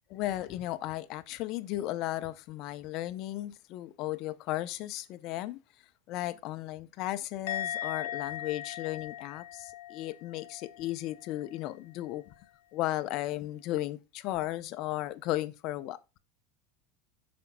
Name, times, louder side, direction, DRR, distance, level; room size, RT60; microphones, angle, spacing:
voice 1, 0.1-5.6 6.1-12.2 12.7-16.0, left 15 dB, 50° left, 0.6 m, -35 dB
Musical instrument, 7.5-10.9 11.1-11.5, left 11 dB, 80° left, 0.9 m, -39 dB
15.5 x 5.2 x 2.2 m
supercardioid pair, 125°, 0 cm